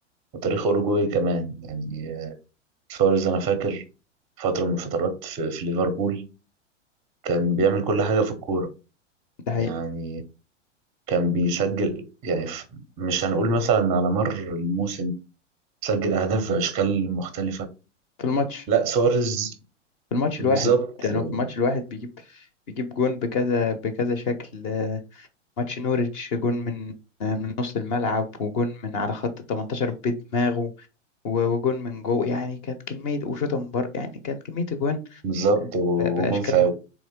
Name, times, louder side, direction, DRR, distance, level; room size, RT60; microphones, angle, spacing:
voice 1, 0.4-2.3 2.9-3.8 4.4-6.2 7.2-8.7 9.6-10.2 11.1-12.6 13.0-15.1 15.8-17.7 18.7-19.5 20.4-21.4 35.2-36.7, right 3 dB, 15° right, 0.5 m, -24 dB
voice 2, 18.2-18.7 20.1-20.7 21.0-22.4 22.8-25.3 25.6-26.9 27.2-30.9 31.2-35.2 36.0-36.7, left 4 dB, 30° left, 0.5 m, -26 dB
3.6 x 3.1 x 4.3 m
figure-of-eight pair, 100°, 37 cm